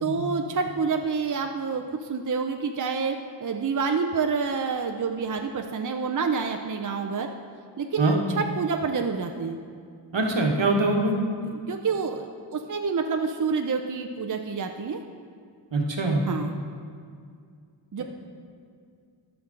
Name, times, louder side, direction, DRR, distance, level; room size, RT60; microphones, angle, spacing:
voice 1, 0.0-7.3 7.8-9.6 11.5-12.3 12.5-15.0 16.3-16.6 17.9-18.0, right 5 dB, 45° right, 5 dB, 0.5 m, -28 dB
voice 2, 10.1-11.2 15.7-16.2, right 2 dB, 70° right, 1 dB, 1.3 m, -23 dB
14.5 x 5.9 x 3.8 m, 2.2 s
wide cardioid pair, 50°, 45 cm